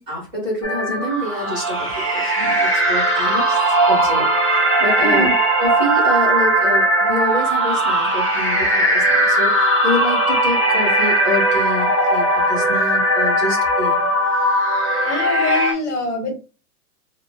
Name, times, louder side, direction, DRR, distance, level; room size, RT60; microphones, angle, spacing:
voice 1, 0.0-3.6 3.9-5.3 5.6-14.0, left 1 dB, 10° right, 0.7 m, -27 dB
sound 1, 0.6-15.7, right 1 dB, 20° left, 0.4 m, -18 dB
voice 2, 5.0-5.3 15.0-16.3, left 2 dB, 50° left, 1.4 m, -24 dB
3.3 x 2.0 x 3.3 m
hypercardioid pair, 175°, 47 cm